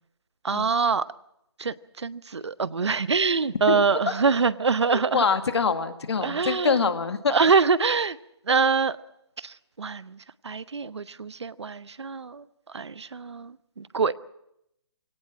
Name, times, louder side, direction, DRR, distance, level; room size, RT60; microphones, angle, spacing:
voice 1, 0.4-1.1 1.6-5.2 6.2-6.8 7.3-8.2 8.5-9.0 9.4-10.2 10.4-12.4 12.7-14.1, right 5 dB, 90° right, 16 dB, 0.9 m, -25 dB
voice 2, 3.7-4.1 4.9-7.4, left 5 dB, 75° left, 8 dB, 2.0 m, -25 dB
23.5 x 17.5 x 7.4 m, 0.82 s
hypercardioid pair, 150°, 14 cm